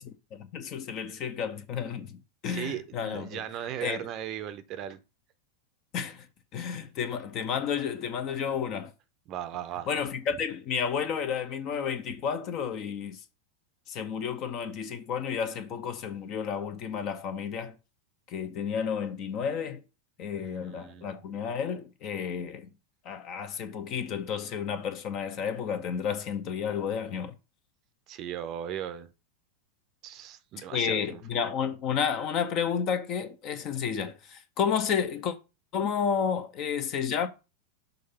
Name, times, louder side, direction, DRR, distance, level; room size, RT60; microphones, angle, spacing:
voice 1, 0.0-3.4 3.8-4.0 5.9-6.3 6.5-8.9 9.9-13.2 13.9-17.7 18.3-19.8 20.2-22.7 23.0-27.3 30.7-35.3 35.7-37.3, left 7 dB, 35° left, 0.8 m, -31 dB
voice 2, 2.5-5.0 9.3-9.9 20.4-21.1 28.1-29.1 30.0-31.2, right 10 dB, 35° right, 0.6 m, -37 dB
6.4 x 2.6 x 5.5 m
figure-of-eight pair, 90°, 0 cm